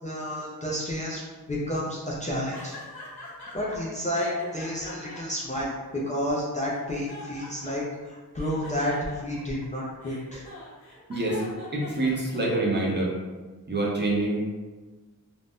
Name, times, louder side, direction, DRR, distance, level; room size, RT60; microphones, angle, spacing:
voice 1, 0.0-1.2 1.5-2.7 3.5-5.7 6.1-10.4, left 1 dB, 20° left, -6 dB, 0.4 m, -30 dB
sound 1, 2.5-3.8 4.1-6.3 6.7-8.0 8.3-12.6, left 1 dB, 75° left, 0.8 m, -43 dB
voice 2, 11.1-11.4 11.7-13.1 13.7-14.5, right 2 dB, 30° right, -4 dB, 0.5 m, -26 dB
2.5 x 2.1 x 3.4 m, 1.3 s
wide cardioid pair, 150°, 36 cm